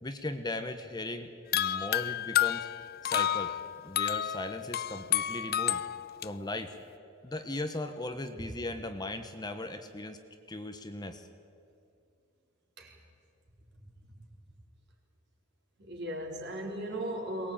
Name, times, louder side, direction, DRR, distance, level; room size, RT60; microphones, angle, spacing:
voice 1, 0.0-2.7 3.0-3.5 3.8-5.8 6.2-6.7 7.2-10.2 10.5-11.3, left 2 dB, 20° left, 8 dB, 1.0 m, -38 dB
sound 1, 1.5-6.3, left 11 dB, 45° left, 0.5 m, -30 dB
voice 2, 15.8-17.5, right 1 dB, 55° right, 0 dB, 4.1 m, -37 dB
22.5 x 19.5 x 8.8 m, 2.4 s
head